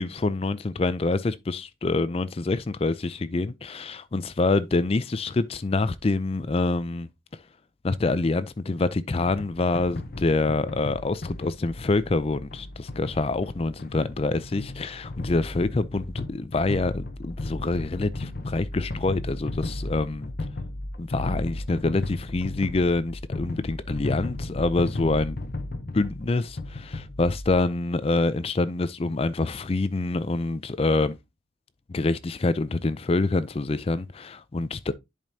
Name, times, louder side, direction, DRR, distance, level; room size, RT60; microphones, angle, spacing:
voice 1, 0.0-7.1 7.8-20.3 21.0-25.4 25.9-31.2 31.9-34.9, left 3 dB, 30° left, 0.4 m, -26 dB
sound 1, 9.2-27.6, left 2 dB, 50° left, 0.8 m, -35 dB
10.5 x 5.1 x 2.7 m
head